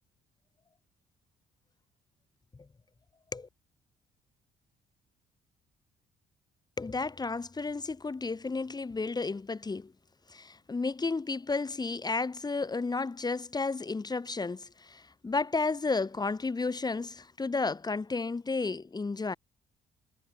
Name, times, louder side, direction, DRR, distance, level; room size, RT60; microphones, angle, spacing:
voice 1, 6.8-9.9 10.3-19.4, left 3 dB, 25° left, 6.6 m, -32 dB
cardioid pair, 85°, 16 cm